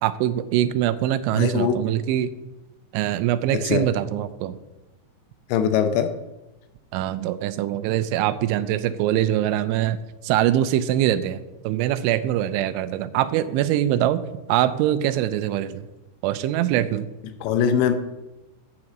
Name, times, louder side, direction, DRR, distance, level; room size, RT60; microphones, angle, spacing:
voice 1, 0.0-2.3 2.9-4.6 6.9-10.0 10.2-14.2 14.5-15.8 16.2-17.1, right 12 dB, 90° right, 13 dB, 3.0 m, -23 dB
voice 2, 1.3-1.8 3.5-3.8 5.5-6.1 17.4-17.9, left 8 dB, 80° left, 8 dB, 2.8 m, -21 dB
8.5 x 6.0 x 7.7 m, 1.0 s
omnidirectional pair, 5.3 m